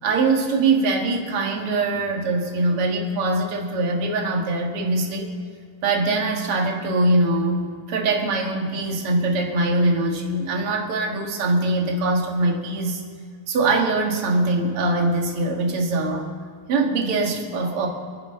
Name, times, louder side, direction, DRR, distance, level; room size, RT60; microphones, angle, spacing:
voice 1, 0.0-5.3 5.8-7.6 7.9-13.0 13.5-16.3 16.7-17.9, right 2 dB, 55° right, 0 dB, 1.6 m, -22 dB
29.5 x 10.5 x 3.8 m, 2.1 s
omnidirectional pair, 5.3 m